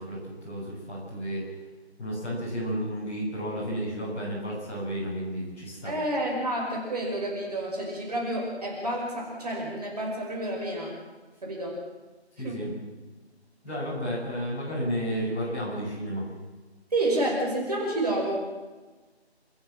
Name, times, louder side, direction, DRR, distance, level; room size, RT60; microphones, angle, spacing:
voice 1, 0.0-1.4 2.0-5.9 12.4-12.7 13.6-16.3, equal, 15° left, -10 dB, 7.9 m, -32 dB
voice 2, 5.8-10.9 11.4-11.8 12.4-12.6 16.9-18.4, right 1 dB, 35° right, -2 dB, 5.8 m, -29 dB
29.5 x 14.5 x 7.6 m, 1.3 s
figure-of-eight pair, 170°, 33 cm